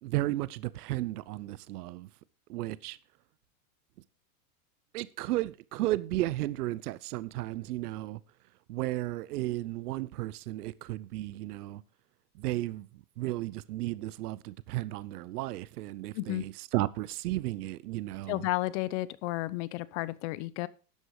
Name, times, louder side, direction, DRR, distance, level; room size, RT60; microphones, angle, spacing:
voice 1, 0.0-2.1 2.5-3.0 4.9-8.2 8.7-11.8 12.3-18.5, right 17 dB, 70° right, 0.8 m, -34 dB
voice 2, 18.3-20.7, left 18 dB, 45° left, 0.9 m, -32 dB
12.5 x 8.1 x 4.8 m
supercardioid pair, 135°, 48 cm